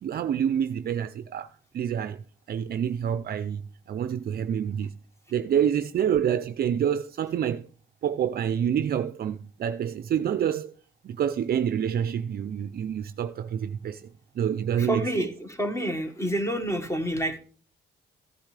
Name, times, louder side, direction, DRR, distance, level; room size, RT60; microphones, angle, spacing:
voice 1, 0.0-1.5 1.7-2.2 2.5-3.6 3.9-4.9 5.3-7.7 8.0-10.7 11.0-14.1 14.4-15.3, right 9 dB, 50° right, 0.5 m, -27 dB
voice 2, 14.8-17.4, right 1 dB, 15° left, 1.5 m, -28 dB
15.0 x 8.7 x 3.3 m
cardioid pair, 90°, 20 cm